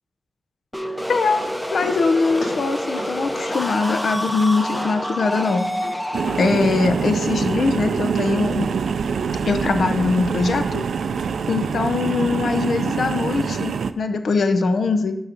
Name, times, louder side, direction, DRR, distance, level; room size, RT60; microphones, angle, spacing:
sound 1, 0.7-8.4, equal, 5° left, 0.6 m, -29 dB
sound 2, 1.0-6.8, left 1 dB, 90° left, 2.6 m, -38 dB
voice 1, 1.1-1.4 1.7-5.7 6.4-8.7 9.5-10.8 11.5-15.2, left 4 dB, 65° left, 8 dB, 0.7 m, -21 dB
sound 3, 6.1-13.9, right 6 dB, 85° right, 0.4 m, -25 dB
6.5 x 6.4 x 5.9 m, 0.79 s
wide cardioid pair, 145°, 0 cm